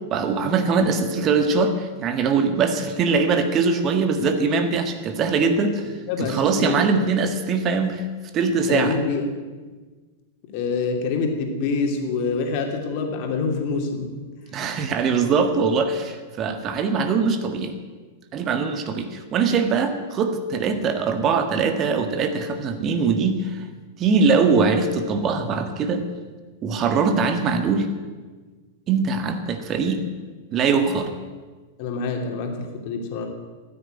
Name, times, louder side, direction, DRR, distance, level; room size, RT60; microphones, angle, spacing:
voice 1, 0.1-5.9 6.2-8.0 8.3-9.0 14.5-17.7 18.3-23.6 24.0-26.0 26.6-27.9 28.9-30.0 30.5-31.1, right 5 dB, 30° right, 8 dB, 1.6 m, -22 dB
voice 2, 6.1-6.8 8.7-9.2 10.5-14.1 31.8-33.3, left 4 dB, 45° left, 3 dB, 2.9 m, -26 dB
15.0 x 9.9 x 9.0 m, 1.4 s
figure-of-eight pair, 95°, 0 cm